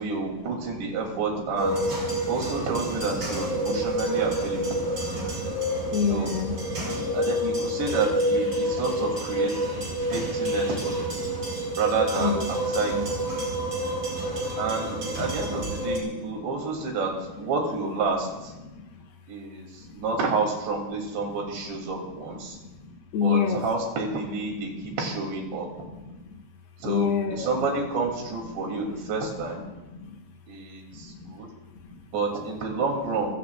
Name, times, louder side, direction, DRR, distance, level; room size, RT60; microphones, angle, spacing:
voice 1, 0.0-1.9 2.3-4.8 6.1-6.3 7.1-11.2 11.8-13.0 14.6-17.1 17.4-18.5 19.3-22.6 23.2-25.7 26.8-29.6 30.5-31.5 32.1-33.4, right 4 dB, 75° right, 0 dB, 5.3 m, -29 dB
sound 1, 1.6-16.0, right 1 dB, 30° right, 5.0 m, -28 dB
voice 2, 3.6-3.9 4.7-4.8 5.3-5.6 5.9-7.0 8.5-8.8 9.9-10.0 11.2-11.8 12.2-12.5 12.9-13.1 13.4-13.5 18.6-18.8 19.8-20.0 22.4-23.6 24.7-25.0 26.0-26.2 26.8-27.7 29.0-29.1 29.6-30.2 30.9-31.3 31.8-32.0, left 7 dB, 65° left, 2 dB, 3.7 m, -30 dB
29.0 x 17.0 x 2.5 m, 1.0 s
omnidirectional pair, 5.1 m